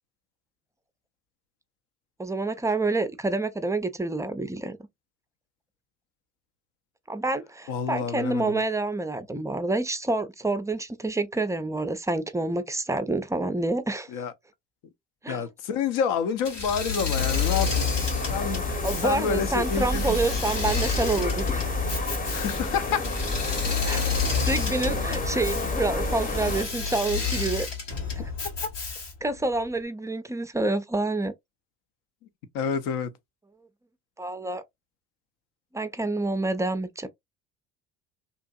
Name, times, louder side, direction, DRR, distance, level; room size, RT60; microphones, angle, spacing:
voice 1, 2.2-4.8 7.1-14.2 15.2-15.5 18.8-21.6 23.6-24.0 24.4-27.7 28.2-28.3 29.2-31.3 34.2-34.6 35.7-37.1, right 2 dB, 10° right, 0.4 m, -28 dB
voice 2, 7.7-8.6 14.1-14.3 15.3-17.9 18.3-20.2 22.3-23.1 32.5-33.1, left 7 dB, 65° left, 0.7 m, -28 dB
Engine / Mechanisms, 16.4-29.3, left 6 dB, 90° left, 1.2 m, -30 dB
sound 1, 17.1-26.7, left 1 dB, 25° left, 0.8 m, -30 dB
2.9 x 2.5 x 2.3 m
hypercardioid pair, 60°, 36 cm